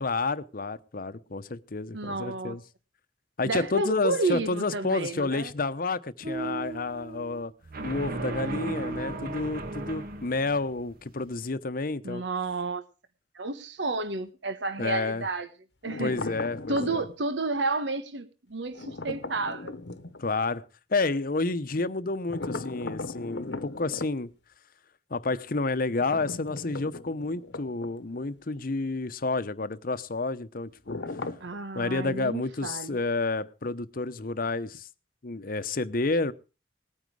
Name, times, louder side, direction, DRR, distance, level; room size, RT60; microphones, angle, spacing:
voice 1, 0.0-2.6 3.4-7.5 7.8-12.2 14.8-15.2 16.0-17.1 20.2-24.3 25.1-31.0 31.7-34.9 35.2-36.3, left 3 dB, 50° left, 0.9 m, -30 dB
voice 2, 1.9-2.6 3.4-5.5 12.0-12.8 13.3-15.5 15.8-16.2 16.7-19.7 31.4-33.0, right 3 dB, 85° right, 1.2 m, -31 dB
sound 1, 6.2-11.3, right 2 dB, 55° right, 1.7 m, -35 dB
sound 2, 15.8-17.2 18.7-20.2 22.3-24.1 25.9-28.3 28.6-28.7 30.9-31.6, left 3 dB, 70° left, 1.1 m, -38 dB
19.0 x 9.3 x 4.8 m
head